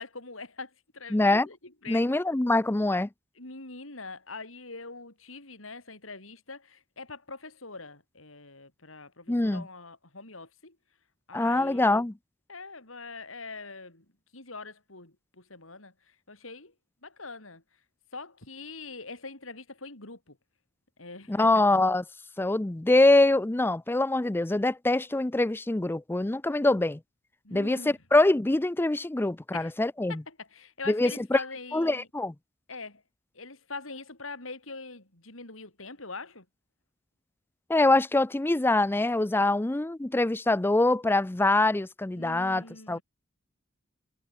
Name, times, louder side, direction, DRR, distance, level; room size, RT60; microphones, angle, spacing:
voice 1, 0.0-2.1 3.4-10.8 11.3-12.0 12.5-14.0 14.3-16.7 17.0-17.6 18.1-20.4 21.0-21.5 27.4-28.0 29.5-29.7 30.1-32.1 32.7-33.0 33.3-36.5 42.1-43.0, left 3 dB, 80° left, 6.1 m, -43 dB
voice 2, 1.1-1.5 1.9-3.1 9.3-9.7 11.3-12.1 21.3-22.0 22.4-27.0 27.5-30.2 30.9-31.4 31.7-32.3 37.7-43.0, left 2 dB, 10° left, 0.4 m, -24 dB
head